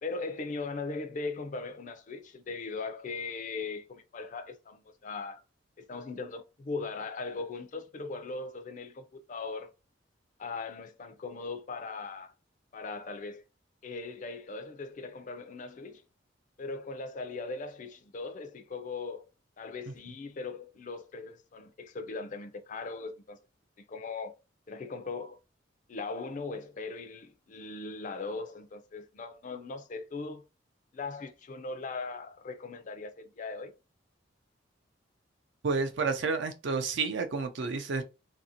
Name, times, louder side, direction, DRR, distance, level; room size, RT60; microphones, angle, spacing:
voice 1, 0.0-5.4 5.8-9.7 10.4-12.3 12.7-13.4 13.8-16.0 16.6-19.2 19.6-23.4 23.8-24.4 24.7-25.4 25.9-30.4 30.9-33.7, left 3 dB, 40° left, 0.4 m, -39 dB
voice 2, 35.6-38.0, right 4 dB, 70° right, 0.5 m, -30 dB
2.8 x 2.6 x 2.7 m
head